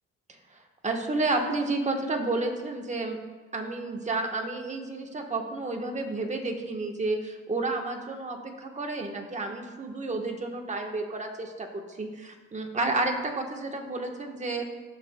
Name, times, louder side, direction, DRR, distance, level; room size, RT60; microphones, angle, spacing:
voice 1, 0.8-3.2 3.5-14.6, right 2 dB, 25° right, 2 dB, 1.2 m, -31 dB
14.5 x 5.5 x 2.2 m, 1.3 s
cardioid pair, 90°, 30 cm